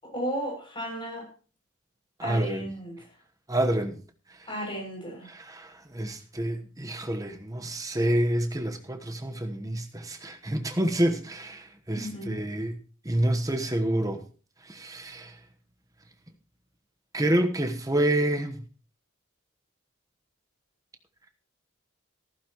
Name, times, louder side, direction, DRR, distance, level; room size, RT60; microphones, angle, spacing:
voice 1, 0.0-1.3 2.2-3.0 4.5-5.3 11.9-12.4, right 1 dB, 25° left, 6.8 m, -34 dB
voice 2, 2.2-2.6 3.5-3.9 5.3-12.8 13.0-14.2 14.7-15.3 17.1-18.6, right 1 dB, 15° right, 1.1 m, -28 dB
15.0 x 14.0 x 3.0 m
head